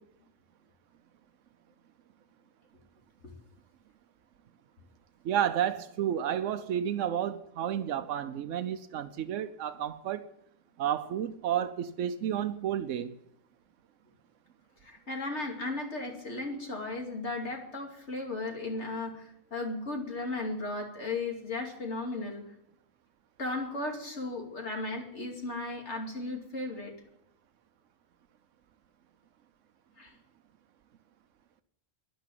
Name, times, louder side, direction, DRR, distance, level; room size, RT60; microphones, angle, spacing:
voice 1, 5.2-10.3 10.8-13.1, right 10 dB, 85° right, 1.0 m, -31 dB
voice 2, 14.8-22.4 23.4-26.9 30.0-30.1, left 2 dB, 65° left, 2.9 m, -35 dB
12.0 x 11.0 x 7.6 m
omnidirectional pair, 1.3 m